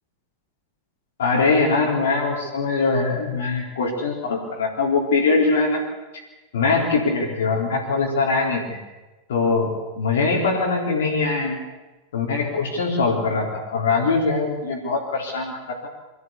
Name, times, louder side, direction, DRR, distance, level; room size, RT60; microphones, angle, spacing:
voice 1, 1.2-5.8 6.5-8.8 9.3-11.6 12.1-15.9, left 4 dB, 60° left, -2 dB, 3.8 m, -22 dB
24.0 x 14.0 x 8.5 m, 1.1 s
figure-of-eight pair, 90°, 0 cm